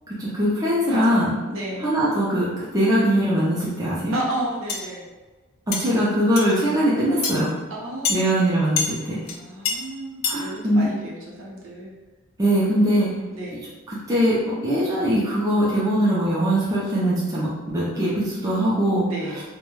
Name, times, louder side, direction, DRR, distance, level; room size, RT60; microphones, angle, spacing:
voice 1, 0.2-1.3 1.8-2.5 2.7-4.2 5.7-7.5 8.1-9.2 10.3-10.9 12.4-13.1 14.1-14.3 14.6-19.1, equal, 15° right, -8 dB, 0.4 m, -21 dB
voice 2, 0.9-2.0 4.1-5.1 7.7-8.3 9.3-11.9 13.3-13.6 19.1-19.4, right 1 dB, 65° right, -4 dB, 0.7 m, -32 dB
sound 1, 4.7-4.9 5.7-5.8 6.4-6.5 7.2-7.3 8.0-8.2 8.8-8.9 9.3-9.4 9.7-9.8 10.2-10.4, left 5 dB, 75° left, 0.4 m, -24 dB
2.3 x 2.1 x 3.1 m, 1.2 s
head